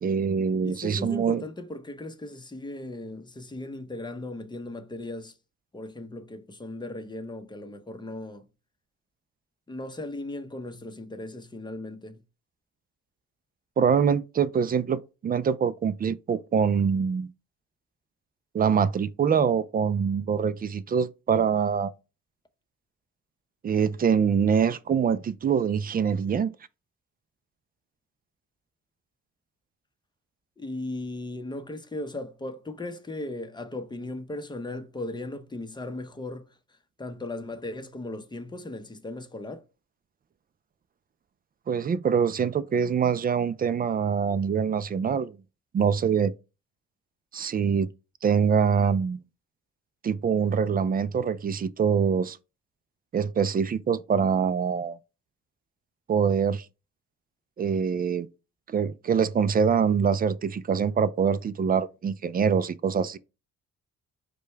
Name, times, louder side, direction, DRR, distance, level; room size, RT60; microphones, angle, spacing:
voice 1, 0.0-1.4 13.8-17.3 18.5-21.9 23.6-26.5 41.7-45.4 45.7-46.3 47.3-47.9 48.2-49.2 50.0-52.4 53.1-55.0 56.1-56.7 57.6-58.3 58.7-63.2, right 6 dB, 30° right, 0.4 m, -24 dB
voice 2, 0.6-5.3 5.7-8.4 9.7-12.2 30.6-36.5 37.0-39.6, left 2 dB, 15° left, 0.7 m, -37 dB
5.0 x 2.3 x 4.5 m
cardioid pair, 90°, 30 cm